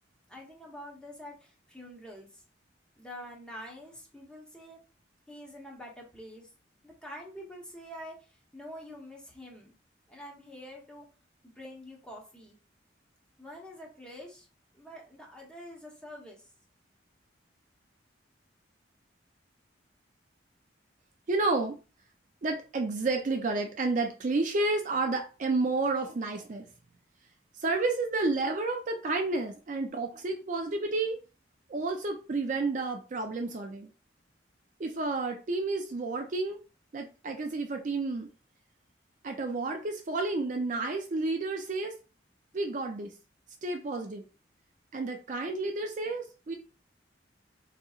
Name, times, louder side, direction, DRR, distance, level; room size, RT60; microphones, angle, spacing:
voice 1, 0.3-2.4 3.0-4.8 5.3-6.5 6.8-9.7 10.1-11.1 11.4-12.6 13.4-14.5 14.7-16.5, equal, 5° left, -2 dB, 0.8 m, -46 dB
voice 2, 21.3-21.8 22.4-26.7 27.6-31.2 31.7-33.9 34.8-36.6 36.9-38.3 39.2-41.9 42.5-43.1 43.6-44.2 44.9-46.5, right 3 dB, 40° right, 3 dB, 0.4 m, -30 dB
3.8 x 2.8 x 2.4 m, 0.34 s
head